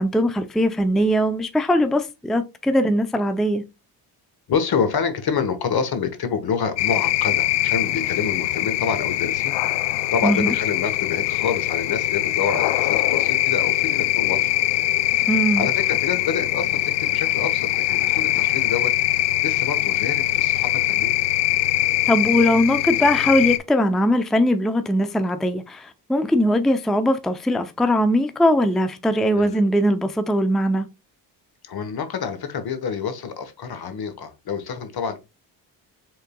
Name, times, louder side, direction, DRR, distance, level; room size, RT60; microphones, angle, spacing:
voice 1, 0.0-3.6 10.2-10.5 15.3-15.7 22.1-30.9, equal, ahead, 0.5 m, -20 dB
voice 2, 4.5-9.6 10.1-14.5 15.2-18.9 19.4-21.2 29.3-29.6 31.6-35.2, left 6 dB, 55° left, 1.2 m, -27 dB
sound 1, 6.8-23.6, left 15 dB, 70° left, 0.5 m, -22 dB
5.5 x 3.7 x 2.3 m
supercardioid pair, 65°, 45 cm